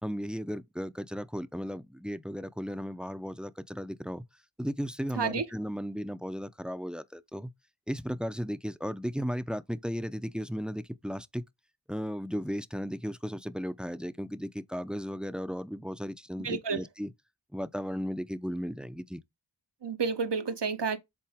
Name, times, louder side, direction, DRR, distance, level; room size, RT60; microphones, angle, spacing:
voice 1, 0.0-4.3 4.6-7.5 7.9-11.4 11.9-17.1 17.5-19.2, equal, ahead, 0.5 m, -35 dB
voice 2, 16.4-16.8 19.8-21.0, right 5 dB, 75° right, 1.1 m, -30 dB
7.6 x 3.9 x 3.5 m
wide cardioid pair, 55°, 42 cm